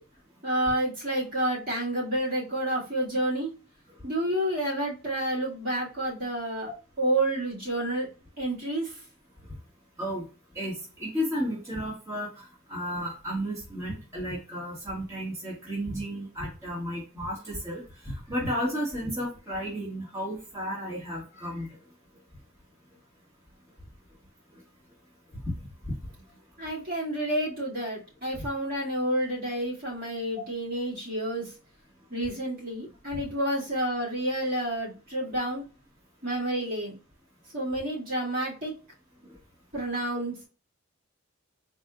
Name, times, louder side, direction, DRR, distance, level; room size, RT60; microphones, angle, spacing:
voice 1, 0.4-3.5 4.0-6.7 7.0-8.1 8.4-9.0 26.6-31.5 32.1-35.6 36.2-36.9 37.5-38.7 39.7-40.5, right 1 dB, 40° right, -6 dB, 2.2 m, -29 dB
voice 2, 10.5-21.8 24.5-24.6 25.4-25.5 25.8-25.9 33.1-33.2 39.2-39.4, equal, 15° right, -7 dB, 1.8 m, -33 dB
4.3 x 3.2 x 2.4 m, 0.32 s
head